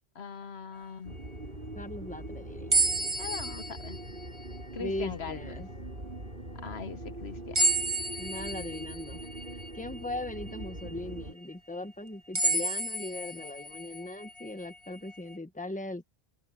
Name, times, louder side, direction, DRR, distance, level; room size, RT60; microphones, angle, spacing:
voice 1, 0.1-1.2 3.2-4.0 4.7-5.7 6.6-7.6, left 5 dB, 90° left, 1.5 m, -41 dB
sound 1, 1.0-11.3, right 1 dB, 60° right, 5.9 m, -42 dB
voice 2, 1.7-2.8 4.8-5.7 8.2-9.2 9.5-16.0, left 1 dB, 10° left, 1.4 m, -39 dB
sound 2, 2.7-5.1 5.7-5.8 7.5-10.9 11.4-11.5 12.3-15.4, right 2 dB, 30° right, 1.6 m, -31 dB
open air
omnidirectional pair, 1.0 m